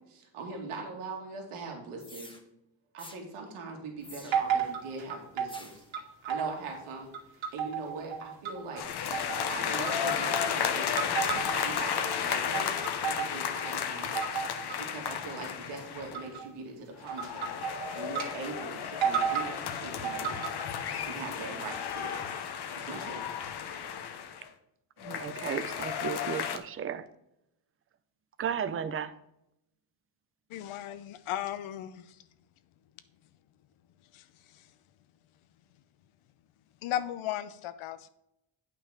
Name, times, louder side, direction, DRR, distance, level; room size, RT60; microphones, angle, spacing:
voice 1, 0.0-2.3 2.9-5.8 6.2-9.2 9.5-12.7 13.0-14.1 14.8-20.6 21.1-22.2 22.7-23.3 23.6-23.7, right 3 dB, 85° right, 2.3 m, -41 dB
sound 1, 2.0-2.4 3.0-3.2 4.0-4.6 5.5-5.9, left 2 dB, 10° left, 1.3 m, -48 dB
sound 2, 4.3-5.6 5.9-6.8 7.1-8.8 9.1-9.5 9.9-10.5 11.0-11.7 12.1-13.7 14.1-14.7 15.0-15.4 16.1-16.5 17.1-18.3 18.6-18.7 19.0-19.5 20.0-20.7, right 7 dB, 65° right, 2.5 m, -32 dB
sound 3, 8.8-16.3 17.0-24.5 25.0-26.6, left 8 dB, 55° left, 1.0 m, -33 dB
voice 2, 25.0-27.0 28.4-29.1, right 8 dB, 25° right, 0.6 m, -34 dB
voice 3, 30.5-32.2 34.1-34.3 34.5-34.6 36.8-38.1, left 12 dB, 75° left, 0.8 m, -36 dB
8.9 x 5.8 x 4.9 m
cardioid pair, 125°, 49 cm